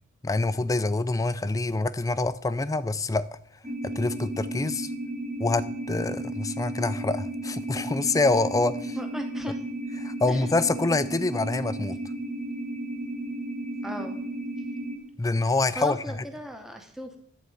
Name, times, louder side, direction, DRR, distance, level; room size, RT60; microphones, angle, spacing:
voice 1, 0.2-3.3 3.8-4.9 5.4-9.0 10.0-12.0 15.2-16.2, left 3 dB, 15° left, 0.4 m, -26 dB
sound 1, 3.6-15.0, right 1 dB, 35° right, 0.9 m, -34 dB
voice 2, 8.9-9.6 10.3-10.5 13.8-14.2 15.8-17.2, equal, ahead, 0.8 m, -37 dB
11.5 x 4.2 x 7.8 m
head